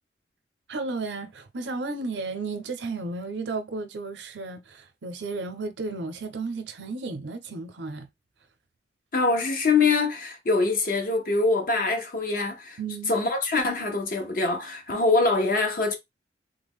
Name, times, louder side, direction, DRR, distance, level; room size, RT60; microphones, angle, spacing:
voice 1, 0.7-8.1 12.8-13.1, right 3 dB, 85° right, 0.6 m, -33 dB
voice 2, 9.1-12.8 13.1-16.0, left 3 dB, 50° left, 0.6 m, -24 dB
3.4 x 2.0 x 3.5 m
head